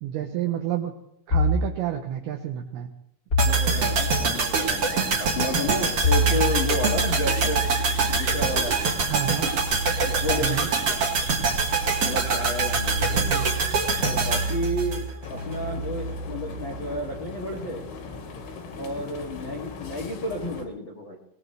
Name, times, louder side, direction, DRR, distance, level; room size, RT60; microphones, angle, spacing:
voice 1, 0.0-0.9 1.3-2.9 9.1-9.5 10.4-10.7 13.1-13.5, right 11 dB, 80° right, 5 dB, 2.3 m, -29 dB
sound 1, 1.3-1.7 3.3-4.2 6.0-17.4, equal, 35° left, 1.4 m, -29 dB
voice 2, 3.4-7.6 8.1-8.7 10.1-11.0 12.0-13.3 14.0-17.8 18.8-21.2, left 1 dB, 60° left, -3 dB, 1.2 m, -31 dB
sound 2, 3.4-15.6 15.8-15.9, right 4 dB, 50° right, 2.0 m, -25 dB
sound 3, 15.2-20.7, left 4 dB, 80° left, 4.5 m, -39 dB
22.0 x 19.0 x 3.3 m, 0.78 s
omnidirectional pair, 5.6 m